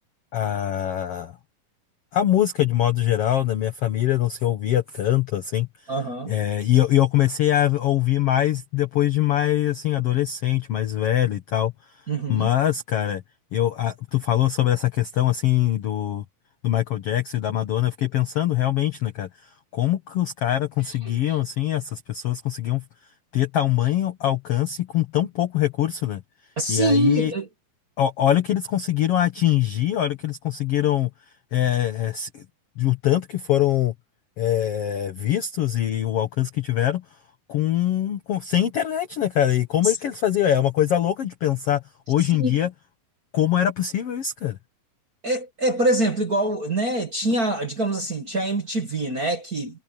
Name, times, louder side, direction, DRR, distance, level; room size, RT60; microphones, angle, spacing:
voice 1, 0.3-1.3 2.1-5.7 6.2-11.7 12.3-13.2 13.5-16.2 16.6-22.8 23.3-26.2 26.7-27.3 28.0-31.1 31.5-32.4 32.8-33.9 34.4-37.0 37.5-42.7 43.3-44.6, left 12 dB, 85° left, 1.3 m, -23 dB
voice 2, 5.9-6.3 12.1-12.5 21.1-21.2 26.6-27.5 39.8-39.9 42.4-42.5 45.2-49.8, right 1 dB, 40° right, 1.4 m, -24 dB
omnidirectional pair, 4.3 m